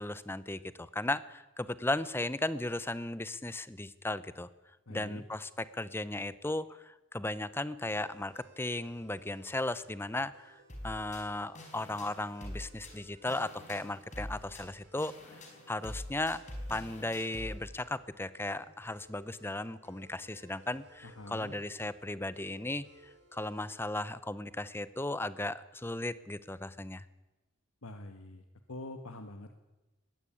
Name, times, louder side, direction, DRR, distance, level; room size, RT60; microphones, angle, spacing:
voice 1, 0.0-4.5 4.9-15.1 15.7-16.4 16.7-22.9 23.3-27.0, left 2 dB, 10° left, 16 dB, 0.7 m, -36 dB
voice 2, 4.9-5.2 21.0-21.5 27.8-28.4 28.7-29.5, left 2 dB, 85° left, 7 dB, 1.4 m, -45 dB
sound 1, 7.8-23.9, right 1 dB, 50° right, 4.5 m, -61 dB
sound 2, 10.7-17.6, left 1 dB, 35° left, 5.0 m, -45 dB
20.5 x 16.5 x 8.7 m, 1.1 s
head